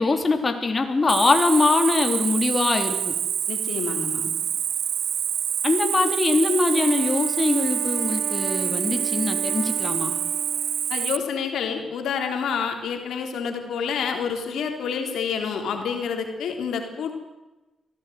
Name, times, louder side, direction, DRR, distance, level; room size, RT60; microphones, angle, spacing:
voice 1, 0.0-3.1 5.6-10.2, left 3 dB, 35° left, 5 dB, 3.5 m, -22 dB
Cricket, 1.1-11.2, right 9 dB, 75° right, 0.7 m, -26 dB
voice 2, 3.5-4.3 10.9-17.2, left 6 dB, 80° left, 5 dB, 3.6 m, -28 dB
Wind instrument woodwind instrument, 6.7-11.0, right 5 dB, 45° right, 1.2 m, -36 dB
24.0 x 16.5 x 9.4 m, 1.1 s
cardioid pair, 75°, 0 cm